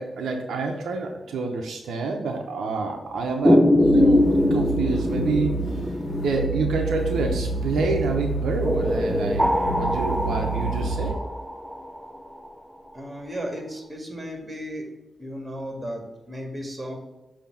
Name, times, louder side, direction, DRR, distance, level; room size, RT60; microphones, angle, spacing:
voice 1, 0.0-5.6 6.2-11.2, right 3 dB, 85° right, 3 dB, 0.7 m, -28 dB
sound 1, 3.4-7.7 8.7-12.5, left 1 dB, ahead, 0.6 m, -23 dB
sound 2, 3.8-11.1, right 3 dB, 45° left, 1.3 m, -29 dB
voice 2, 12.9-14.9 15.2-16.9, equal, 25° right, 2 dB, 1.8 m, -34 dB
6.9 x 2.8 x 5.7 m, 1.0 s
cardioid pair, 60°, 0 cm